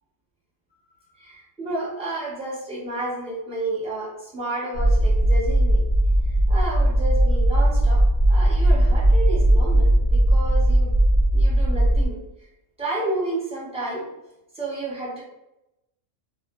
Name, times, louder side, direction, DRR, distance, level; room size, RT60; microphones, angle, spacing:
voice 1, 1.2-5.8 6.5-8.0 8.3-10.9 11.3-12.2 12.8-14.1 14.5-15.2, right 2 dB, 5° right, -7 dB, 0.7 m, -31 dB
sound 1, 4.7-12.1, right 1 dB, 50° right, 0.6 m, -18 dB
2.1 x 2.0 x 2.9 m, 0.90 s
omnidirectional pair, 1.3 m